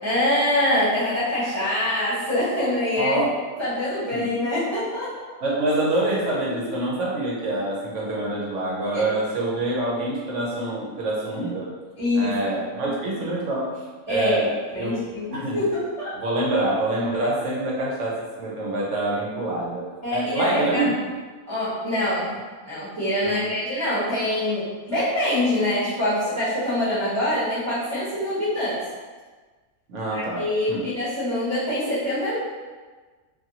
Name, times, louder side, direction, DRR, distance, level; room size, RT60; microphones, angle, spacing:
voice 1, 0.0-3.2 3.6-5.1 8.9-9.1 12.0-12.4 14.1-14.4 14.7-16.1 20.0-20.9 21.5-22.3 22.6-28.8 30.1-32.4, left 1 dB, 25° right, -13 dB, 0.8 m, -24 dB
voice 2, 3.0-3.3 4.1-4.3 5.4-11.7 12.1-13.7 14.1-14.9 15.3-15.6 16.2-19.8 20.1-21.1 23.2-23.5 29.9-30.4 30.7-30.9, right 2 dB, 60° right, -4 dB, 1.0 m, -26 dB
2.7 x 2.6 x 2.7 m, 1.4 s
omnidirectional pair, 1.5 m